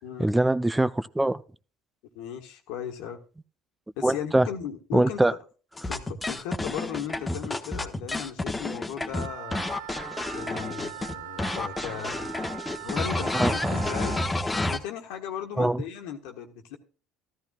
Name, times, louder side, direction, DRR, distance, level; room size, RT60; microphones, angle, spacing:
voice 1, 0.2-1.4 4.0-4.5 4.9-5.3 13.3-13.7 15.6-15.8, right 1 dB, 10° right, 0.4 m, -23 dB
voice 2, 2.1-3.2 4.0-5.4 5.8-9.7 10.3-12.5 12.8-14.2 14.7-16.8, left 9 dB, 75° left, 1.5 m, -37 dB
sound 1, 5.8-11.1 11.4-14.8, left 2 dB, 15° left, 1.2 m, -30 dB
Wind instrument woodwind instrument, 9.1-14.3, right 12 dB, 80° right, 0.7 m, -40 dB
13.5 x 13.5 x 2.4 m
hypercardioid pair, 70°, 0 cm